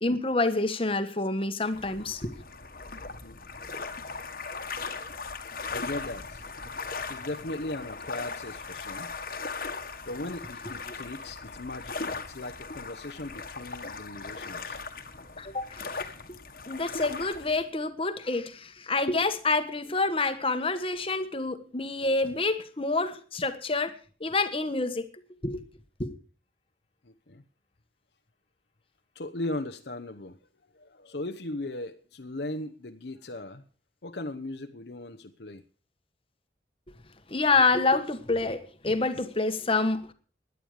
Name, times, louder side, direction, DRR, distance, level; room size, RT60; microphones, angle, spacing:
voice 1, 0.0-2.3 15.4-16.0 16.7-25.1 25.4-25.6 26.0-26.1 37.3-40.1, left 3 dB, 30° left, 1.4 m, -27 dB
sound 1, 1.7-17.6, left 4 dB, 50° left, 1.5 m, -38 dB
voice 2, 3.0-3.4 5.7-6.4 6.8-9.1 9.4-9.8 10.0-14.8 27.0-27.4 29.1-33.6 34.0-35.6, left 2 dB, 65° left, 1.0 m, -38 dB
16.5 x 11.0 x 5.0 m
head